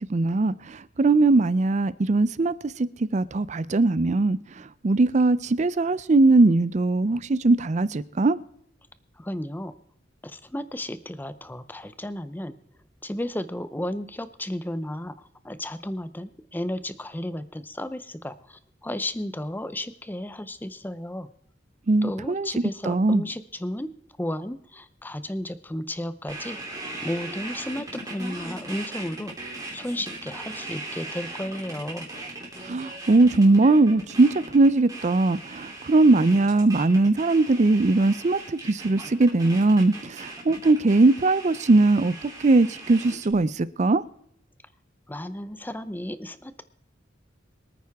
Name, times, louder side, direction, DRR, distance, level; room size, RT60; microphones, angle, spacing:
voice 1, 0.1-2.5 3.1-4.4 4.8-8.4 21.9-22.5 22.9-23.2 32.7-42.1 42.4-44.0, right 2 dB, 40° right, 0.5 m, -20 dB
voice 2, 9.2-9.8 10.2-12.6 13.0-21.3 22.0-23.9 24.2-26.6 27.0-29.3 29.7-32.1 45.1-46.6, left 1 dB, 10° left, 0.6 m, -33 dB
sound 1, 26.3-43.3, right 2 dB, 20° right, 3.1 m, -39 dB
24.5 x 9.3 x 3.5 m
head